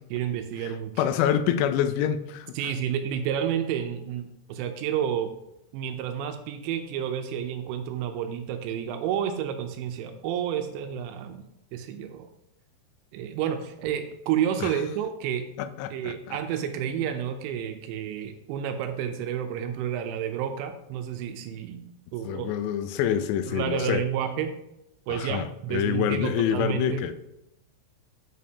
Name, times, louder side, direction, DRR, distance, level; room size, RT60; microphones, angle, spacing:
voice 1, 0.1-1.0 2.6-5.3 5.7-11.4 11.7-12.3 13.1-15.4 15.9-21.8 22.1-22.5 23.5-24.5 25.1-27.0, right 9 dB, 85° right, 2.8 m, -30 dB
voice 2, 1.0-2.5 14.6-14.8 15.6-16.4 22.2-24.0 25.1-27.1, left 9 dB, 85° left, 2.7 m, -26 dB
8.9 x 6.4 x 2.8 m
omnidirectional pair, 5.1 m